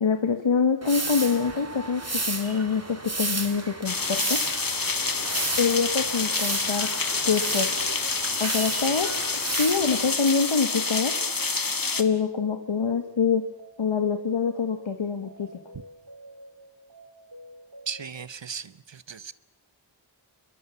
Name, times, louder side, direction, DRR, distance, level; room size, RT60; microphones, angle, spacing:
voice 1, 0.0-4.4 5.6-6.9 7.2-7.7 8.4-9.1 9.6-11.1 12.0-13.4 13.8-15.5, left 5 dB, 75° left, 7 dB, 1.5 m, -25 dB
sound 1, 0.8-10.2, right 2 dB, 30° right, 2.6 m, -33 dB
sound 2, 3.8-12.0, left 4 dB, 45° left, 1.7 m, -28 dB
sound 3, 4.9-18.1, right 1 dB, 50° right, 3.0 m, -48 dB
voice 2, 17.9-19.3, right 6 dB, 70° right, 16 dB, 1.1 m, -37 dB
29.0 x 22.5 x 7.1 m, 0.88 s
wide cardioid pair, 65°, 47 cm